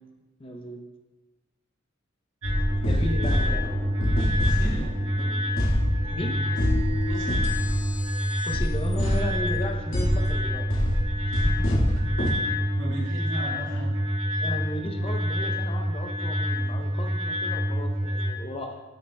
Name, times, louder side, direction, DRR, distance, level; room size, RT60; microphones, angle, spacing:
voice 1, 0.4-0.8 2.9-3.7 6.1-6.4 8.5-10.7 11.4-11.5 14.4-18.8, left 1 dB, 30° left, 3 dB, 0.6 m, -35 dB
sound 1, 2.4-12.3, equal, 75° left, 1.8 m, -26 dB
sound 2, 2.4-18.3, equal, 90° right, 1.4 m, -28 dB
voice 2, 4.4-4.9 6.7-7.4 12.8-13.9, right 1 dB, 65° right, -5 dB, 2.2 m, -36 dB
9.0 x 6.5 x 2.2 m, 1.2 s
head